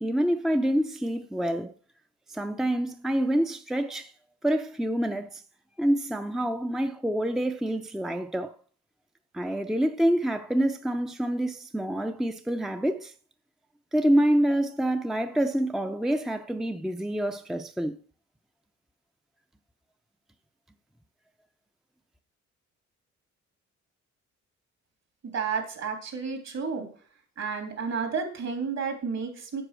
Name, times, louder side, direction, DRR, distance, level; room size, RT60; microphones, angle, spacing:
voice 1, 0.0-1.7 2.3-4.1 4.4-5.4 5.8-8.5 9.3-13.1 13.9-18.0, right 1 dB, ahead, 0.6 m, -27 dB
voice 2, 25.2-26.9 27.4-29.6, right 5 dB, 60° right, 3.3 m, -31 dB
8.1 x 5.8 x 7.6 m
cardioid pair, 90°, 30 cm